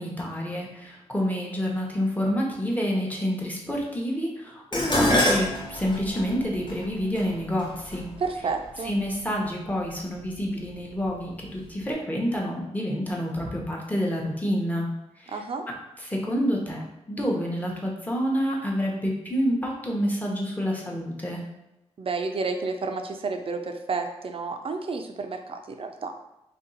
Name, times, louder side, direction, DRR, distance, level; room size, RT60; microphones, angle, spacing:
voice 1, 0.0-8.1 8.8-14.9 15.2-15.4 16.0-16.8 17.1-21.4, equal, 15° left, -2 dB, 0.8 m, -28 dB
Dishes pots and pans, 4.7-9.1 10.0-10.4 10.8-11.6 11.8-11.9, left 1 dB, 40° left, 0.9 m, -28 dB
voice 2, 8.2-9.0 15.3-15.6 22.0-26.1, right 4 dB, 50° right, 5 dB, 0.4 m, -31 dB
2.6 x 2.3 x 3.9 m, 0.91 s
cardioid pair, 65°, 12 cm